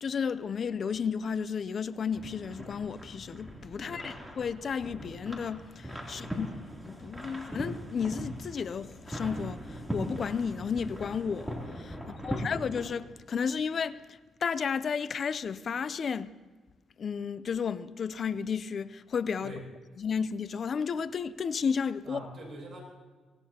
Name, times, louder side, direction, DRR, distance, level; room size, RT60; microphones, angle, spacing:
voice 1, 0.0-6.5 6.8-14.0 14.4-16.3 17.0-19.5 20.0-22.2, left 6 dB, 50° left, 0.5 m, -33 dB
sound 1, 2.1-12.9, equal, ahead, 3.0 m, -40 dB
voice 2, 3.8-4.2 6.1-6.4 12.0-12.5 19.4-19.6 22.1-22.8, right 2 dB, 40° right, 6.6 m, -45 dB
24.0 x 18.5 x 2.9 m
cardioid pair, 90°, 0 cm